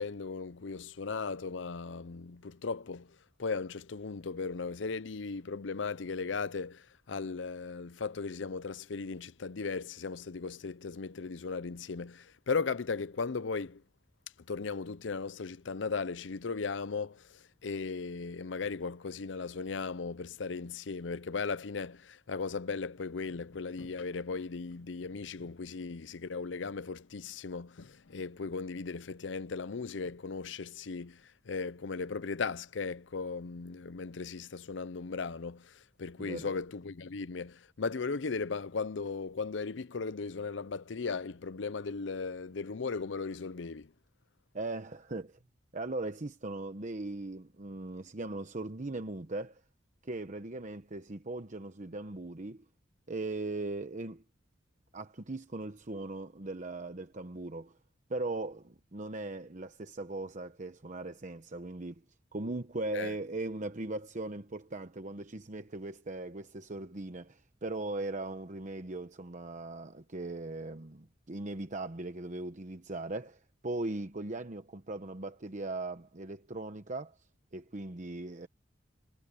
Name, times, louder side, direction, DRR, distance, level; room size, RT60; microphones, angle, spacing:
voice 1, 0.0-13.8 14.5-43.9 62.9-63.1, left 4 dB, 75° left, 0.6 m, -37 dB
voice 2, 36.2-36.5 44.5-45.4 45.7-49.6 50.0-52.6 53.1-54.2 54.9-57.8 58.1-62.0 62.3-77.2 77.5-78.5, right 2 dB, 40° right, 1.0 m, -39 dB
head